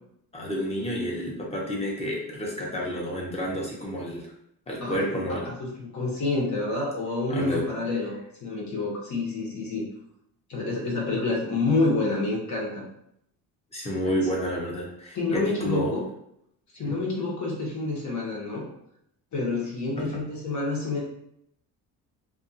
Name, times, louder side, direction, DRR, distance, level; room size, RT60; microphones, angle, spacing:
voice 1, 0.3-4.3 4.7-5.5 7.3-7.7 13.7-15.9 16.8-17.0 20.0-20.2, equal, 20° left, -3 dB, 0.9 m, -30 dB
voice 2, 5.4-8.2 8.4-9.9 10.5-12.8 15.1-16.0 16.7-18.7 19.3-21.0, left 3 dB, 55° left, -4 dB, 1.1 m, -28 dB
2.6 x 2.4 x 2.7 m, 0.75 s
cardioid pair, 105°, 35 cm